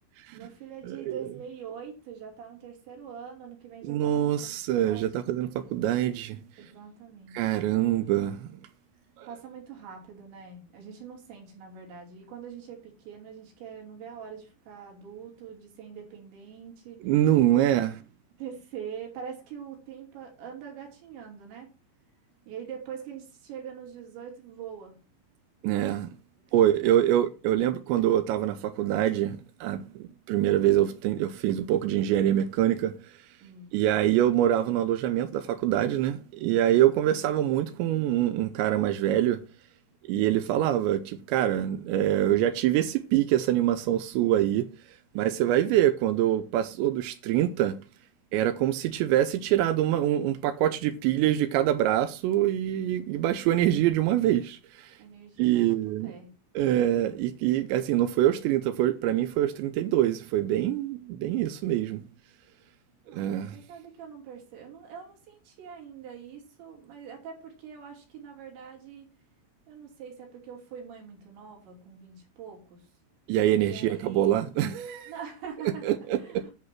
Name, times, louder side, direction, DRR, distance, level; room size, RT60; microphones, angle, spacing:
voice 1, 0.3-4.5 4.9-5.1 6.6-7.5 9.2-17.0 17.5-17.7 18.4-21.7 22.5-25.0 26.6-26.9 33.4-33.7 45.1-45.3 45.6-45.7 55.0-55.8 56.0-56.3 63.1-69.1 69.7-72.9 73.6-74.4 75.0-76.5, right 7 dB, 65° right, 5.1 m, -43 dB
voice 2, 0.8-1.2 3.8-6.4 7.3-8.6 9.2-9.3 17.0-17.9 25.6-26.1 26.5-32.9 33.7-39.4 40.1-44.7 45.2-47.8 48.3-54.9 55.4-56.1 56.6-62.0 63.1-63.6 73.3-75.1 75.8-76.2, right 12 dB, 80° right, 2.7 m, -25 dB
11.0 x 5.0 x 6.0 m
omnidirectional pair, 5.7 m